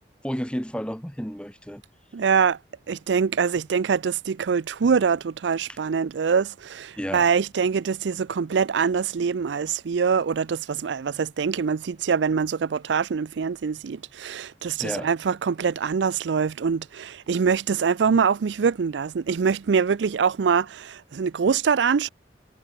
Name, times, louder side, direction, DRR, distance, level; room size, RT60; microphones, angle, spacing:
voice 1, 0.2-1.8 5.7-5.8 7.0-7.3 14.8-15.1, equal, 5° left, 7.3 m, -31 dB
voice 2, 2.1-2.6 2.9-22.1, right 6 dB, 80° right, 0.4 m, -24 dB
head